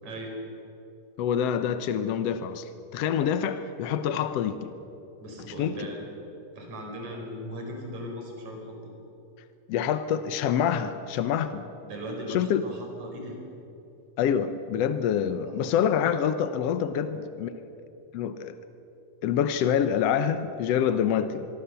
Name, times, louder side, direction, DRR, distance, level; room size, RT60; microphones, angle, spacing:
voice 1, 0.0-0.4 5.2-6.0 6.5-8.6 11.8-13.4 15.4-15.7 17.1-17.2, equal, 50° right, 1 dB, 5.7 m, -38 dB
voice 2, 1.2-4.7 5.6-5.7 9.7-11.6 12.3-12.6 14.2-17.5 18.1-18.5 19.2-21.5, left 8 dB, 85° left, 11 dB, 1.4 m, -26 dB
25.0 x 23.0 x 6.9 m, 2.9 s
omnidirectional pair, 4.1 m